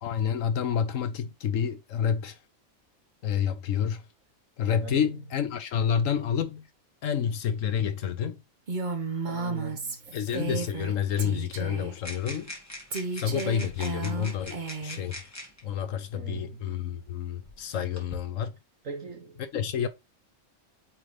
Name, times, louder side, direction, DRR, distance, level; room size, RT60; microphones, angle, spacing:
voice 1, 0.0-2.4 3.2-4.0 4.6-6.7 7.0-8.4 10.1-12.5 13.1-15.3 15.6-18.6 19.5-19.9, left 8 dB, 70° left, 1.2 m, -29 dB
Female speech woman speaking, 8.7-10.9 11.2-11.9 12.9-15.0, right 4 dB, 40° right, 1.1 m, -33 dB
voice 2, 9.3-10.2 16.1-16.9 18.8-19.4, right 5 dB, 70° right, 2.2 m, -40 dB
sound 1, 12.0-15.6 16.6-16.7 17.5-18.2, left 1 dB, 10° left, 2.0 m, -43 dB
8.8 x 3.9 x 3.3 m
omnidirectional pair, 1.4 m